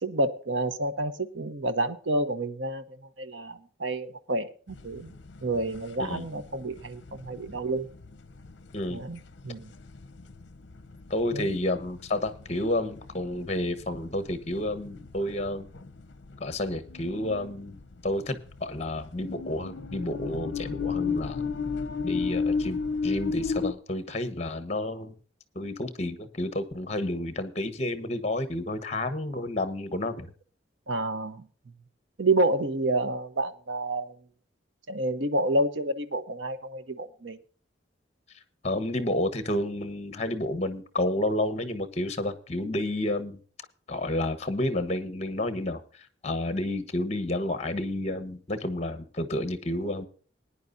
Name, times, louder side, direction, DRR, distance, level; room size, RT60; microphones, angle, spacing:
voice 1, 0.0-2.8 3.2-5.1 5.4-7.9 8.9-9.2 9.4-9.7 11.3-11.6 30.9-31.5 32.2-34.2 34.9-37.4, right 2 dB, 75° right, 10 dB, 1.1 m, -29 dB
sound 1, 4.7-23.7, left 5 dB, 60° left, 0.7 m, -34 dB
voice 2, 11.1-15.7 16.4-17.8 18.0-21.4 22.0-25.1 25.5-30.3 38.6-43.4 43.9-45.8 46.2-50.1, left 1 dB, 35° left, 10 dB, 1.2 m, -30 dB
20.0 x 10.0 x 2.7 m, 0.41 s
head